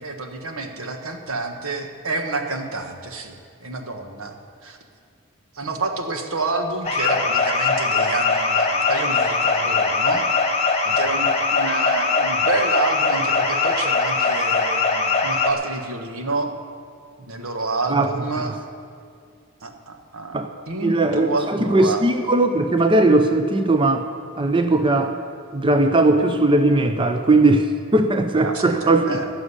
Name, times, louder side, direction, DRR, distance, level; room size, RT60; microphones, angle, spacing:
voice 1, 0.0-4.4 4.6-4.8 5.5-10.3 10.8-16.5 17.2-18.6 19.6-22.0 28.4-29.3, right 3 dB, 85° right, 4 dB, 1.4 m, -28 dB
sound 1, 6.8-15.5, left 4 dB, 30° left, 1.2 m, -21 dB
voice 2, 20.8-24.1 24.4-25.2 25.5-27.7 27.9-29.2, right 2 dB, 25° right, 7 dB, 0.6 m, -18 dB
15.0 x 6.3 x 9.9 m, 2.3 s
head